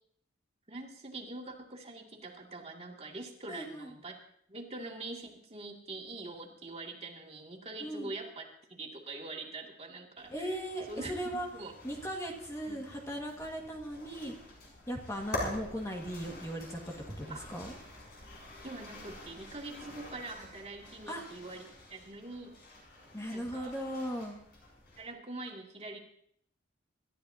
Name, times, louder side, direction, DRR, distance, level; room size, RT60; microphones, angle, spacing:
voice 1, 0.7-4.2 4.5-10.6 10.9-11.1 11.5-11.7 12.6-12.8 17.3-17.5 18.6-22.6 23.3-23.7 25.0-26.0, right 2 dB, 35° right, 0 dB, 2.4 m, -44 dB
voice 2, 3.5-3.9 7.8-8.1 10.3-11.5 11.8-14.3 14.9-16.8 17.1-17.7 21.1-21.2 23.1-24.4, equal, 15° left, 0 dB, 1.8 m, -38 dB
sound 1, 10.2-25.0, left 1 dB, 55° left, 6.7 m, -46 dB
27.0 x 13.5 x 2.8 m, 0.67 s
head